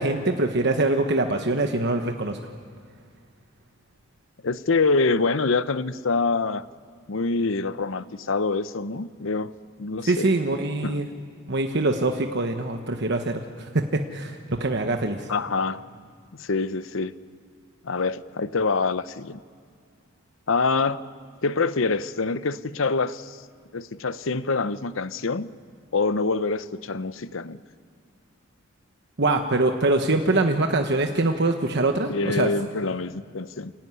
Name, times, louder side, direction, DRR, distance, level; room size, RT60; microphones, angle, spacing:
voice 1, 0.0-2.4 10.0-11.1 11.5-15.3 29.2-32.5, right 2 dB, 55° right, 5 dB, 1.1 m, -24 dB
voice 2, 4.4-6.6 7.1-9.5 9.8-10.3 10.8-10.9 15.3-15.8 16.3-17.1 17.8-19.4 20.5-21.0 21.4-23.4 23.7-25.5 25.9-27.6 32.1-33.7, left 4 dB, 65° left, 14 dB, 0.7 m, -25 dB
28.5 x 17.0 x 9.6 m, 2.2 s
head